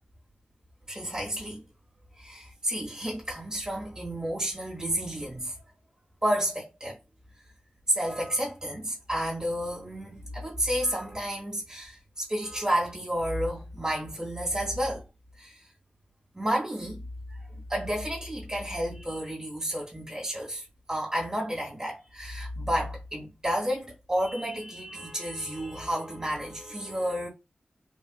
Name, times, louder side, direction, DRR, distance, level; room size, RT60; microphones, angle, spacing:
voice 1, 0.9-1.6 2.2-5.6 6.2-7.0 7.9-15.0 15.4-15.6 16.3-17.0 17.5-27.3, equal, 20° right, 1.1 m, -31 dB
3.3 x 2.4 x 2.3 m
wide cardioid pair, 80°, 3 cm